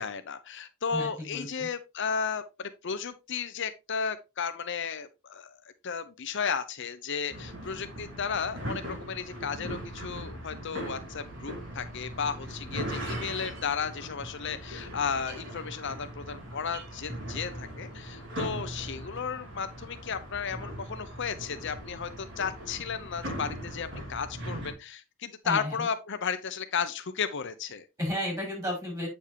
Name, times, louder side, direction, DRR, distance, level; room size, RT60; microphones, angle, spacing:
voice 1, 0.0-27.8, left 6 dB, 60° left, 0.7 m, -34 dB
voice 2, 0.9-1.7 25.4-25.8 28.0-29.1, equal, 15° right, 5.7 m, -33 dB
sound 1, 7.3-24.7, right 1 dB, 60° right, 4.1 m, -39 dB
8.4 x 7.1 x 2.9 m
head